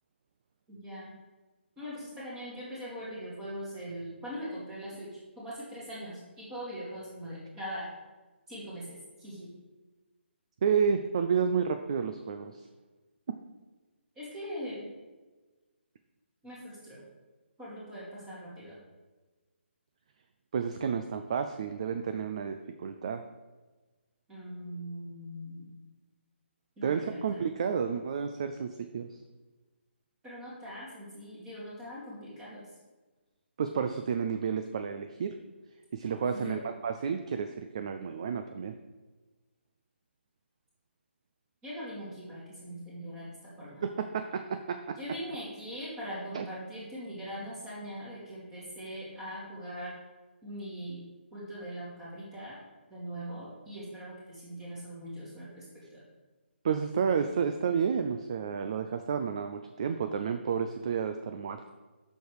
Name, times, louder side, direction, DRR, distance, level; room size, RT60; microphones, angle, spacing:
voice 1, 0.7-1.1 1.8-5.1 5.4-7.9 8.5-9.5 14.2-14.9 16.4-17.0 17.6-18.8 24.3-25.7 26.8-27.5 30.2-32.6 36.2-36.6 41.6-43.8 45.0-49.9 50.4-51.0 51.3-52.6 52.9-55.7 55.9-56.1, equal, 10° right, -7 dB, 2.3 m, -41 dB
voice 2, 10.6-12.6 20.5-23.2 26.8-29.2 33.6-35.3 35.9-38.7 43.8-45.0 46.3-46.5 56.6-61.7, right 6 dB, 30° right, 7 dB, 0.3 m, -31 dB
7.9 x 6.5 x 4.7 m, 1.2 s
hypercardioid pair, 170°, 7 cm